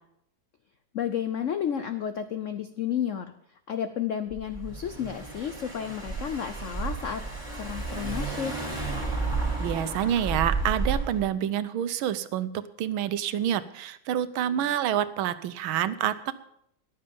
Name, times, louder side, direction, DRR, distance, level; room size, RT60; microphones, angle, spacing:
voice 1, 0.9-3.3 3.7-7.3 7.6-8.6, left 9 dB, 90° left, 10 dB, 0.6 m, -31 dB
Car / Engine, 4.3-11.2, right 3 dB, 15° left, 4.4 m, -32 dB
voice 2, 9.6-16.3, right 10 dB, 85° right, 14 dB, 1.6 m, -28 dB
14.5 x 11.0 x 5.3 m, 0.72 s
omnidirectional pair, 2.2 m